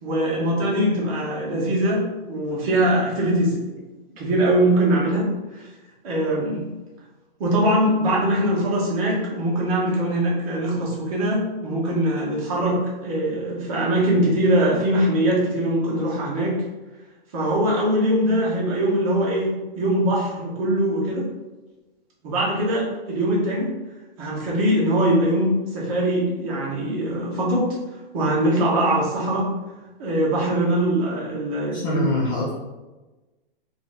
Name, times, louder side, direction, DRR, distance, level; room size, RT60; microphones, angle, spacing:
voice 1, 0.0-3.6 4.2-5.6 6.0-6.7 7.4-16.6 17.3-21.3 22.2-23.7 24.2-27.7 28.1-29.5 30.0-32.1, right 1 dB, 35° right, -4 dB, 1.2 m, -22 dB
voice 2, 31.7-32.5, left 1 dB, 25° left, -4 dB, 0.4 m, -24 dB
3.3 x 2.7 x 3.9 m, 1.1 s
hypercardioid pair, 160°, 30 cm